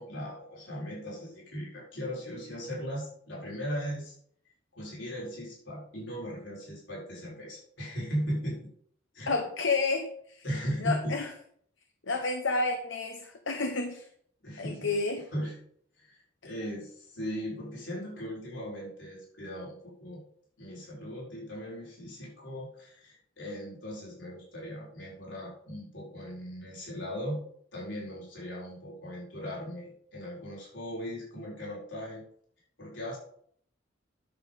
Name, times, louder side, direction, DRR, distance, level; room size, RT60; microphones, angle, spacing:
voice 1, 0.0-4.1 4.7-8.6 9.1-9.4 10.4-11.1 12.1-12.2 14.4-15.0 15.3-15.5 16.0-20.2 20.6-27.4 27.7-32.2 32.8-33.2, equal, 70° left, -4 dB, 4.6 m, -38 dB
voice 2, 9.3-10.4 10.8-11.3 12.1-14.1 14.6-15.3, left 3 dB, 90° left, 5 dB, 1.1 m, -30 dB
10.5 x 6.9 x 5.4 m, 0.62 s
head